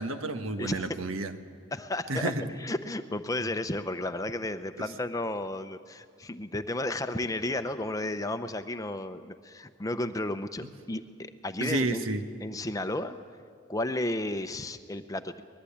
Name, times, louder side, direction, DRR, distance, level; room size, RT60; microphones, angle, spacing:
voice 1, 0.0-1.3 2.1-2.4 4.8-4.9 11.6-12.2, right 2 dB, 80° right, 8 dB, 1.3 m, -30 dB
voice 2, 1.7-2.3 2.6-12.0 12.4-13.2 13.7-15.4, left 1 dB, 15° left, 9 dB, 0.7 m, -33 dB
23.5 x 20.5 x 8.6 m, 2.3 s
head